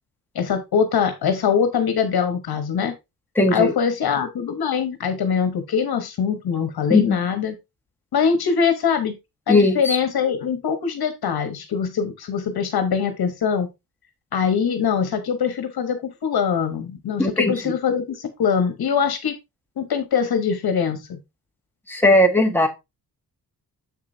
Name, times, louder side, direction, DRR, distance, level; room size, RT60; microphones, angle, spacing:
voice 1, 0.3-2.9 3.5-7.5 8.1-9.1 9.5-13.7 14.3-19.3 19.8-21.2, left 6 dB, 75° left, 7 dB, 1.2 m, -23 dB
voice 2, 3.3-3.7 6.9-7.2 9.5-10.0 17.2-17.7 21.9-22.7, left 2 dB, 5° left, 3 dB, 1.4 m, -18 dB
7.5 x 6.6 x 2.7 m, 0.23 s
wide cardioid pair, 115°, 37 cm